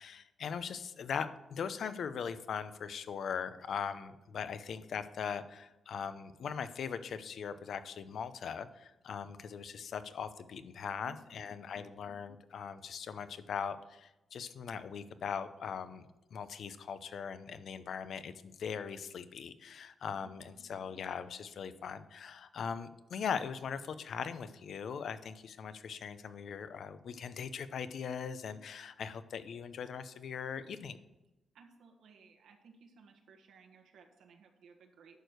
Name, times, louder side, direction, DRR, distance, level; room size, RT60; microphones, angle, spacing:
voice 1, 0.0-31.0, left 7 dB, 70° left, 12 dB, 0.6 m, -40 dB
voice 2, 11.0-12.1 20.2-20.7 31.5-35.2, right 5 dB, 85° right, 4 dB, 1.5 m, -60 dB
11.0 x 4.6 x 6.5 m, 0.96 s
cardioid pair, 120°, 0 cm